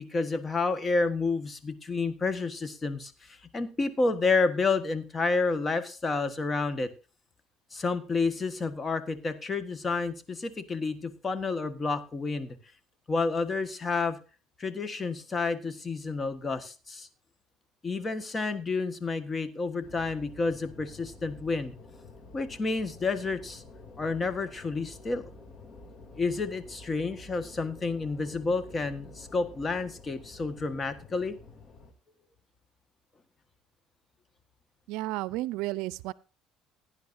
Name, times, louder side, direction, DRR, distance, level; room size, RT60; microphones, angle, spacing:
voice 1, 0.0-6.9 7.7-12.6 13.1-14.2 14.6-17.1 17.8-21.7 22.3-23.6 24.0-25.3 26.2-31.4, left 3 dB, 25° left, 1.4 m, -30 dB
sound 1, 19.8-31.9, left 2 dB, 45° left, 2.8 m, -49 dB
voice 2, 34.9-36.1, right 17 dB, 80° right, 0.5 m, -32 dB
17.0 x 10.5 x 2.7 m
cardioid pair, 115°, 0 cm